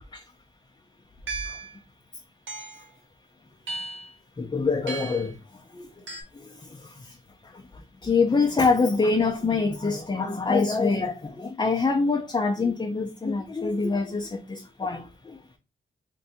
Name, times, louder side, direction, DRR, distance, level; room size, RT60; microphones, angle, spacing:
sound 1, 1.3-1.8 2.5-2.9 3.7-4.1 4.9-5.3 6.1-6.2, right 3 dB, 70° right, 0.9 m, -35 dB
voice 1, 4.4-5.3 5.7-5.9 8.0-15.4, left 4 dB, 20° left, 0.5 m, -25 dB
2.6 x 2.2 x 4.0 m
cardioid pair, 55°, 20 cm